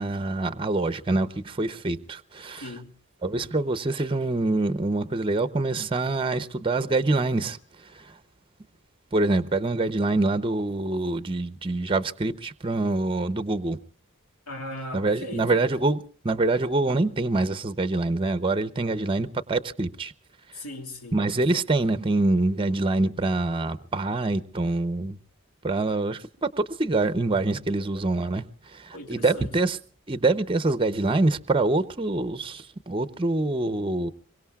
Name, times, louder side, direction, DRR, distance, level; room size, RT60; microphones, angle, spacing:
voice 1, 0.0-2.7 3.2-7.6 7.9-8.1 9.1-13.8 14.9-20.1 21.1-25.2 25.6-28.4 28.7-29.8 30.1-34.1, right 2 dB, 25° right, 0.7 m, -25 dB
voice 2, 2.6-2.9 14.5-15.6 20.5-21.2 28.9-29.5, left 1 dB, 75° left, 2.6 m, -38 dB
25.5 x 23.0 x 2.3 m
head